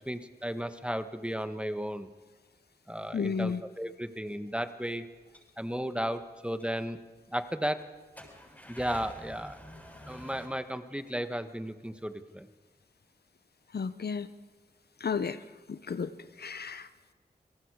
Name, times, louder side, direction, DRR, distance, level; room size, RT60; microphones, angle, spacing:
voice 1, 0.1-2.1 2.9-5.1 5.6-7.0 7.3-7.8 8.7-9.6 10.1-12.5, equal, 5° right, 9 dB, 1.4 m, -34 dB
voice 2, 3.1-3.6 13.7-14.3 15.0-15.4 15.7-16.1 16.4-16.9, left 5 dB, 70° left, 13 dB, 0.8 m, -32 dB
sound 1, 5.3-5.5 6.2-6.3 6.6-6.7 7.1-7.2 8.0-10.5, equal, 10° left, 7.0 m, -48 dB
28.0 x 18.5 x 4.9 m, 1.3 s
cardioid pair, 40°, 17 cm